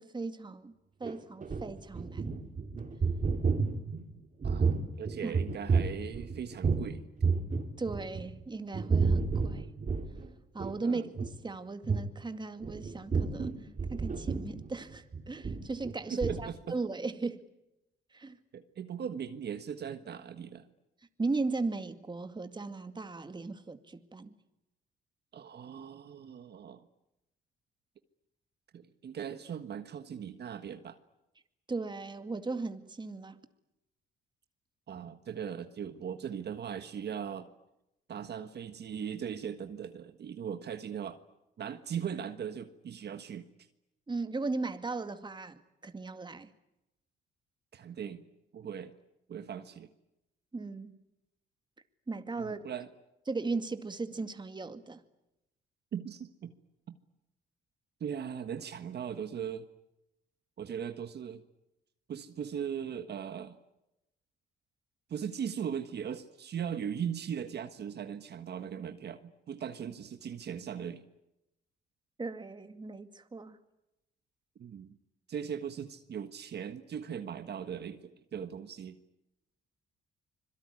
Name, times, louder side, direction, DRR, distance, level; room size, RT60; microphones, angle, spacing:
voice 1, 0.0-2.3 5.2-5.4 7.8-9.7 10.5-11.1 11.4-17.4 18.1-18.4 21.2-24.3 31.7-33.4 44.1-46.5 50.5-51.0 52.1-52.6 53.3-55.0 72.2-73.6, right 3 dB, 20° right, 2.2 m, -37 dB
sound 1, 1.0-6.9 7.2-8.4 8.7-10.3 10.6-10.7 11.1-11.3 11.8-12.1 12.6-15.9 16.2-16.4, right 4 dB, 40° right, 3.8 m, -31 dB
voice 2, 4.4-7.0 10.8-11.1 16.1-16.8 18.5-20.7 25.3-26.9 28.7-31.0 34.9-37.5 38.1-41.2 41.6-43.5 47.7-48.3 48.5-48.9 49.3-49.9 52.4-52.9 55.9-56.5 58.0-59.7 60.6-61.4 62.1-63.6 65.1-71.1 74.6-75.0 75.3-79.0, right 8 dB, 55° right, 1.5 m, -39 dB
25.5 x 22.5 x 9.8 m
cardioid pair, 90°, 20 cm